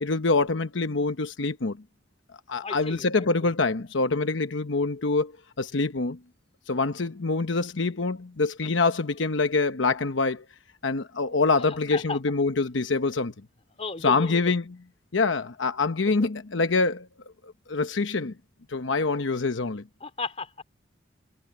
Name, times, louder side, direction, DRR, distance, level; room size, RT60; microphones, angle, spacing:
voice 1, 0.0-1.8 2.5-5.3 5.6-6.2 6.7-10.4 10.8-13.3 14.0-14.6 15.1-17.1 17.4-18.3 18.7-19.8, left 3 dB, 90° left, 1.0 m, -25 dB
voice 2, 2.6-3.5 11.6-11.7 11.9-12.2 13.8-14.5 20.0-20.5, left 3 dB, 35° left, 3.3 m, -35 dB
head